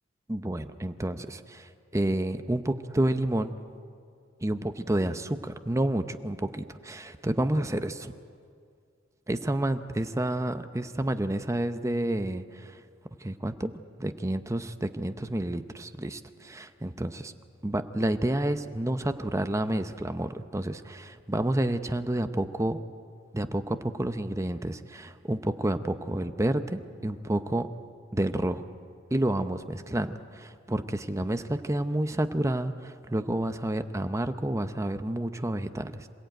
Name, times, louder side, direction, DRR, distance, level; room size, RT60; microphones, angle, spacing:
voice 1, 0.3-3.6 4.4-8.1 9.3-12.8 13.2-13.7 14.0-17.3 17.6-22.8 23.3-27.7 28.1-28.6 29.1-36.1, right 1 dB, 15° right, 9 dB, 0.7 m, -29 dB
27.0 x 16.0 x 9.1 m, 2.2 s
head